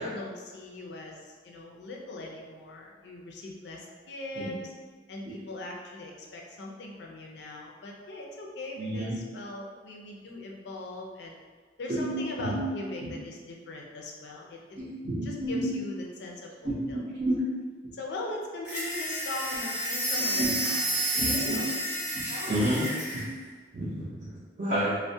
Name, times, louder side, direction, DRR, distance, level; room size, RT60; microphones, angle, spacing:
voice 1, 0.0-4.5 5.1-11.4 11.8-14.6 15.2-17.0 17.9-21.9 22.3-22.7, left 2 dB, 65° left, -1 dB, 0.4 m, -40 dB
voice 2, 8.8-9.2 11.9-12.1 12.4-12.6 13.0-13.1 14.8-15.7 16.6-17.4 20.3-20.6 21.2-21.6 22.2-22.9 23.1-23.2 23.7-25.0, right 1 dB, 45° right, -11 dB, 0.5 m, -30 dB
sound 1, 18.6-23.3, right 1 dB, 5° right, 0.8 m, -30 dB
2.3 x 2.1 x 2.6 m, 1.5 s
head